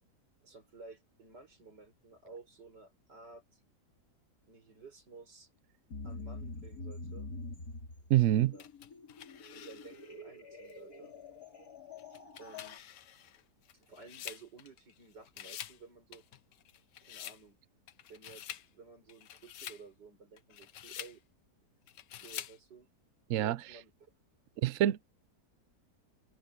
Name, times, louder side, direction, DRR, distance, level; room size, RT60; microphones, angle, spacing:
voice 1, 0.4-3.6 4.5-5.5 6.0-7.3 8.5-8.7 9.5-11.1 12.4-12.8 13.7-16.2 17.0-17.6 18.1-21.2 21.7-21.8 22.1-22.9 23.4-23.9, right 4 dB, 90° right, 6.1 m, -54 dB
sound 1, 5.9-12.8, left 3 dB, 60° left, 3.5 m, -46 dB
voice 2, 8.1-8.5 23.3-23.6 24.6-25.1, right 13 dB, 65° right, 0.9 m, -26 dB
sound 2, 8.6-10.1 10.7-10.8 12.0-15.0 15.3-15.8 16.1-17.4 17.9-18.7 19.1-19.8 20.4-21.2 21.9-22.6, left 10 dB, 90° left, 1.5 m, -47 dB
omnidirectional pair, 1.8 m